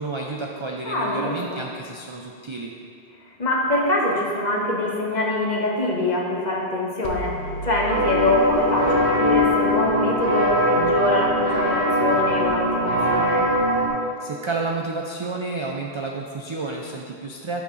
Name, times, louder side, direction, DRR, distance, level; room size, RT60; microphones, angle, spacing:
voice 1, 0.0-2.7 14.2-17.6, right 3 dB, 50° right, 0 dB, 0.3 m, -30 dB
voice 2, 0.8-1.6 3.4-13.4, left 1 dB, 45° left, -3 dB, 1.2 m, -24 dB
sound 1, 7.0-11.8, left 2 dB, 90° left, 0.9 m, -33 dB
sound 2, 7.9-13.9, equal, 20° right, 1.4 m, -21 dB
11.5 x 4.1 x 3.6 m, 2.4 s
omnidirectional pair, 1.1 m